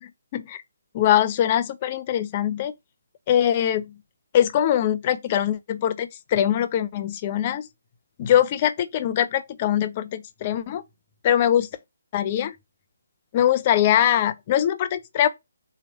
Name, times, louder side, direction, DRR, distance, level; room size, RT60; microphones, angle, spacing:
voice 1, 0.0-0.6 0.9-2.7 3.3-3.9 4.3-7.7 8.2-10.8 11.2-11.7 12.1-12.5 13.3-15.3, left 10 dB, 30° left, 0.5 m, -22 dB
4.0 x 3.0 x 4.1 m
figure-of-eight pair, 150°, 0 cm